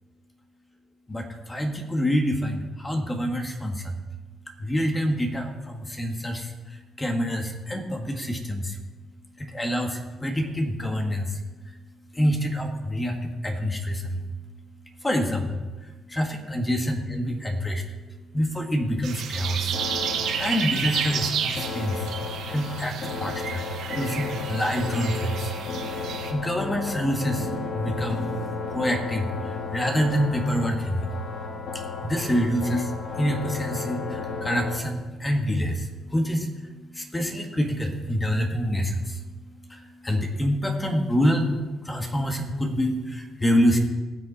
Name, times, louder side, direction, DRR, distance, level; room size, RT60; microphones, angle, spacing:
voice 1, 1.1-3.9 4.6-6.5 7.0-8.8 9.4-11.4 12.1-14.2 15.0-15.6 16.1-17.8 18.3-19.7 20.4-22.1 22.5-23.6 23.9-25.5 26.3-28.3 28.7-31.1 31.7-32.9 33.2-36.5 36.9-39.2 39.7-41.6 41.8-43.8, equal, 15° left, 3 dB, 1.6 m, -26 dB
sound 1, 19.0-26.3, right 7 dB, 80° right, 1.4 m, -31 dB
sound 2, 19.7-34.8, left 4 dB, 70° left, 1.9 m, -34 dB
18.5 x 6.6 x 4.2 m, 1.2 s
cardioid pair, 90°, 0 cm